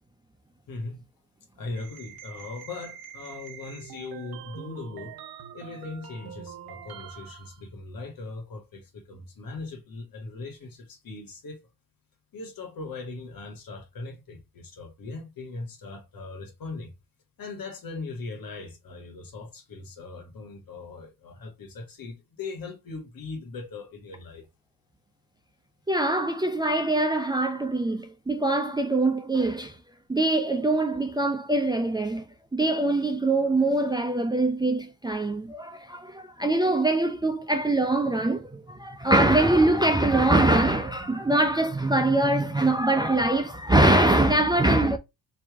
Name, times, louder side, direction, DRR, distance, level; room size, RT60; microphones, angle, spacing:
voice 1, 0.7-1.0 1.5-5.2 5.5-11.6 12.3-16.9 17.4-24.5, left 3 dB, 55° left, 1.6 m, -39 dB
sound 1, 1.7-7.6, right 8 dB, 60° right, 1.1 m, -44 dB
voice 2, 25.9-29.7 30.1-32.2 32.5-45.0, right 2 dB, 10° right, 0.5 m, -23 dB
3.3 x 2.9 x 3.5 m
supercardioid pair, 60°, 41 cm